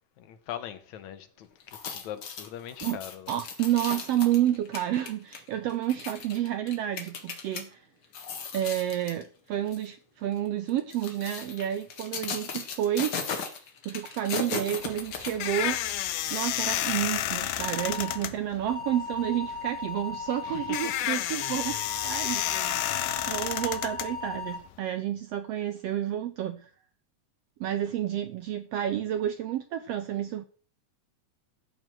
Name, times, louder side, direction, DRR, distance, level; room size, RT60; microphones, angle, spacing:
voice 1, 0.2-3.4 17.7-17.8 18.2-18.3 20.4-21.0 22.2-22.4, left 10 dB, 70° left, 2.3 m, -41 dB
sound 1, 1.6-7.6 8.0-9.2 9.7-9.9 10.7-15.8 16.2-16.3, left 6 dB, 45° left, 2.0 m, -37 dB
voice 2, 3.3-7.9 8.5-13.1 13.8-15.8 16.3-21.8 22.0-22.9 23.3-26.7 27.6-30.5, right 12 dB, 90° right, 1.3 m, -30 dB
sound 2, 14.8-24.8, left 13 dB, 85° left, 2.4 m, -31 dB
sound 3, 17.7-18.2 18.7-20.9 21.4-24.6, left 4 dB, 20° left, 0.9 m, -37 dB
14.0 x 5.4 x 7.5 m
omnidirectional pair, 3.7 m